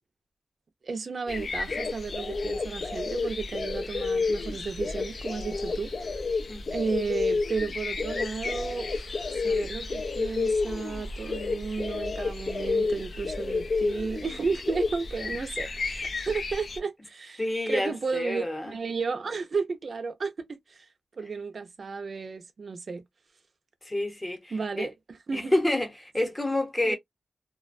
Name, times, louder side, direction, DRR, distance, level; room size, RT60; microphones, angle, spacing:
voice 1, 0.8-5.9 6.7-20.9 21.2-23.0 24.5-25.5 26.8-26.9, right 4 dB, 55° right, 0.5 m, -33 dB
sound 1, 1.3-16.8, left 4 dB, 50° left, 0.3 m, -31 dB
voice 2, 6.5-6.8 15.2-15.3 17.4-18.7 23.8-24.9 25.3-26.9, left 1 dB, 20° left, 0.8 m, -29 dB
2.4 x 2.1 x 2.4 m
wide cardioid pair, 140°, 0 cm